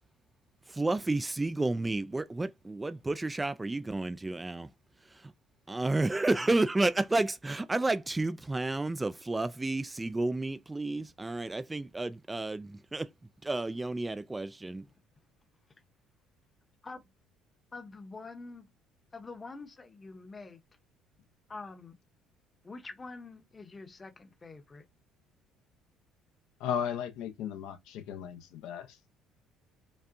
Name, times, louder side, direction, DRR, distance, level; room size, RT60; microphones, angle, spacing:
voice 1, 0.7-4.7 5.7-13.1 13.4-14.8, right 2 dB, 15° right, 0.3 m, -31 dB
voice 2, 17.7-18.7 19.1-20.6 21.5-22.0 22.6-24.9, left 3 dB, 20° left, 0.8 m, -45 dB
voice 3, 26.6-29.0, left 8 dB, 80° left, 0.7 m, -35 dB
5.2 x 2.2 x 2.6 m
cardioid pair, 115°, 0 cm